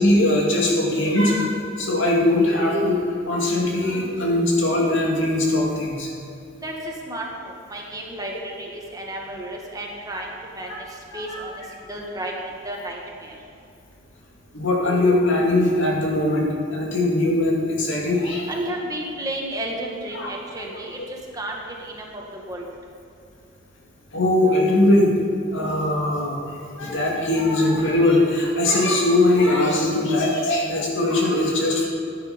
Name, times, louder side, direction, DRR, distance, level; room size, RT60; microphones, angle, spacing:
voice 1, 0.0-6.1 10.7-10.8 11.1-11.4 14.5-18.5 20.1-20.3 21.0-21.1 24.1-25.1 25.5-31.9, left 1 dB, 65° left, -2 dB, 2.5 m, -20 dB
voice 2, 7.1-10.3 10.5-10.9 11.1-11.5 11.9-13.4 18.5-21.0 21.3-22.2 22.5-22.7, right 1 dB, 20° right, -1 dB, 1.8 m, -32 dB
14.0 x 9.4 x 5.3 m, 2.6 s
head